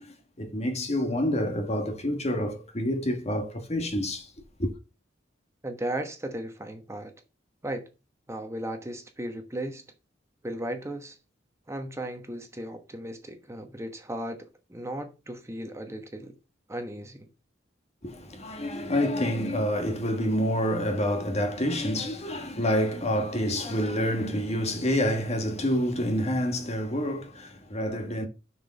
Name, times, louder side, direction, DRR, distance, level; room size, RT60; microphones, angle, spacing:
voice 1, 0.0-4.3 4.6-4.7 18.0-28.3, equal, 35° left, 1.5 m, -28 dB
voice 2, 5.6-7.1 7.6-7.8 8.3-9.8 10.4-11.2 11.7-16.3 16.7-17.3, right 1 dB, 15° right, 1.1 m, -36 dB
6.7 x 6.2 x 5.5 m
head